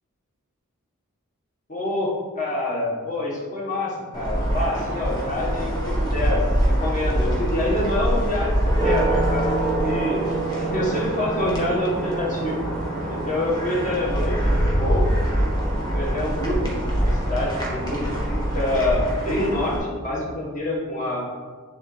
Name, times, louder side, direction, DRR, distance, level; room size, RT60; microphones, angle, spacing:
voice 1, 1.7-10.2 10.6-12.6 13.1-15.0 15.9-16.7 17.0-18.1 18.5-21.2, left 1 dB, 35° left, -4 dB, 1.6 m, -26 dB
sound 1, 4.1-19.8, right 1 dB, 20° left, 1.5 m, -24 dB
9.2 x 3.8 x 3.4 m, 1.5 s
head